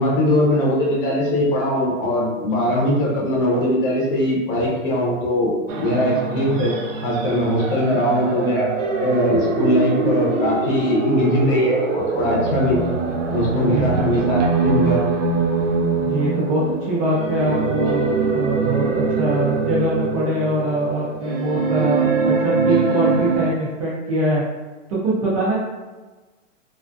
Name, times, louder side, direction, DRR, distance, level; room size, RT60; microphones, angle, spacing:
voice 1, 0.0-6.7 7.0-8.7 9.0-12.8 13.3-15.0, left 1 dB, 45° left, -3 dB, 0.7 m, -20 dB
sound 1, 5.7-23.5, right 4 dB, 85° right, 0.6 m, -23 dB
voice 2, 13.5-13.9 15.9-24.4 24.9-25.6, right 1 dB, 30° right, -7 dB, 0.4 m, -23 dB
2.4 x 2.3 x 2.4 m, 1.2 s
hypercardioid pair, 155°, 38 cm